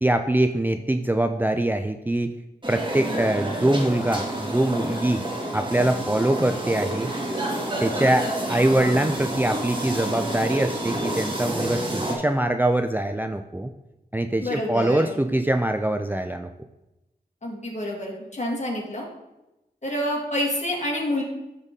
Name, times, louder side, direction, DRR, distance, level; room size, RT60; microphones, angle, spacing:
voice 1, 0.0-2.3 2.7-5.2 5.5-7.1 7.8-13.7 14.1-16.5, right 1 dB, 10° right, 7 dB, 0.4 m, -23 dB
sound 1, 2.6-12.2, right 1 dB, 30° right, 2.0 m, -29 dB
voice 2, 14.4-15.1 17.4-19.1 19.8-21.2, left 1 dB, 45° left, -2 dB, 2.3 m, -28 dB
12.0 x 4.0 x 3.7 m, 0.96 s
cardioid pair, 50°, 16 cm